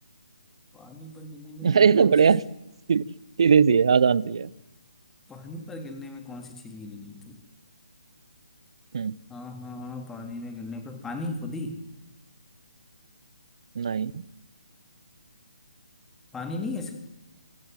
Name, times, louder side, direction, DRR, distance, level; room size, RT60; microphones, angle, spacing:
voice 1, 0.7-2.1 5.3-7.4 9.3-11.8 16.3-16.9, left 2 dB, 5° left, 5 dB, 2.9 m, -37 dB
voice 2, 1.6-2.4 2.9-3.0 3.4-4.5 8.9-9.2 13.8-14.2, right 6 dB, 50° right, 23 dB, 0.8 m, -19 dB
25.5 x 23.5 x 7.8 m, 0.98 s
figure-of-eight pair, 140°, 4 cm